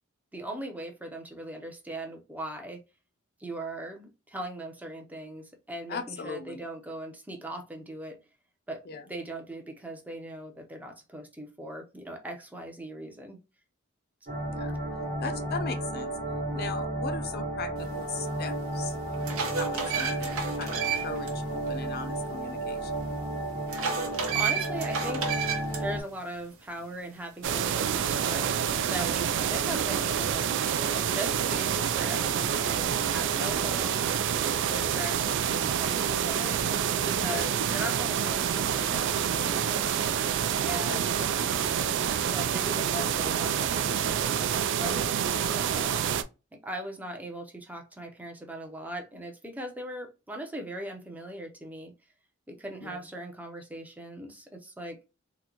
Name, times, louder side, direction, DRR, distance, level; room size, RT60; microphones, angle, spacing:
voice 1, 0.3-2.8 3.4-8.2 8.7-8.8 9.1-13.4 24.1-25.3 25.8-28.6 28.9-34.2 34.7-36.6 37.0-39.8 40.6-41.2 42.3-46.0 46.5-51.9 52.5-55.0, right 1 dB, 10° right, 0.5 m, -39 dB
voice 2, 5.9-6.6 8.9-9.0 14.5-14.7 15.2-16.1 16.5-18.9 19.5-22.9 37.2-37.4 40.9-41.4 45.2-45.5 52.8-53.0, left 5 dB, 50° left, 0.5 m, -38 dB
sound 1, 14.3-26.0, right 1 dB, 40° right, 1.0 m, -33 dB
sound 2, 18.3-18.4 18.9-21.3 21.7-21.8 23.7-25.8, right 6 dB, 80° right, 0.9 m, -31 dB
sound 3, 27.4-46.2, right 8 dB, 60° right, 0.3 m, -27 dB
3.7 x 2.1 x 2.9 m
head